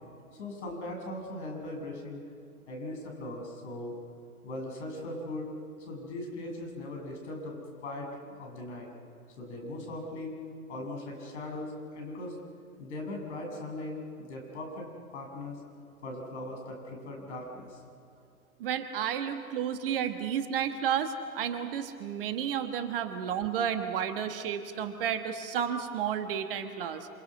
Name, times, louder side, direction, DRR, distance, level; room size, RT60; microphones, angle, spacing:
voice 1, 0.3-2.2 2.7-3.9 4.4-5.5 5.8-7.5 7.8-8.1 8.4-8.9 9.4-10.4 10.7-12.4 12.8-14.9 15.1-15.6 16.0-17.8, left 1 dB, 50° left, 1 dB, 7.7 m, -39 dB
voice 2, 18.6-27.1, right 8 dB, 35° right, 8 dB, 1.5 m, -32 dB
28.0 x 28.0 x 6.3 m, 2.5 s
figure-of-eight pair, 120°, 45 cm